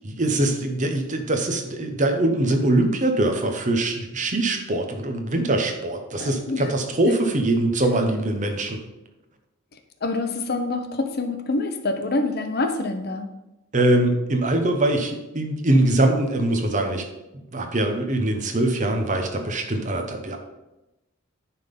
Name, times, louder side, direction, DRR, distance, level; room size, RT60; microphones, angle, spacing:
voice 1, 0.0-8.8 13.7-17.0 17.3-20.4, right 1 dB, 40° right, 5 dB, 1.0 m, -23 dB
voice 2, 6.2-6.7 10.0-13.3, left 2 dB, 50° left, 7 dB, 0.8 m, -26 dB
9.9 x 3.8 x 5.4 m, 0.98 s
head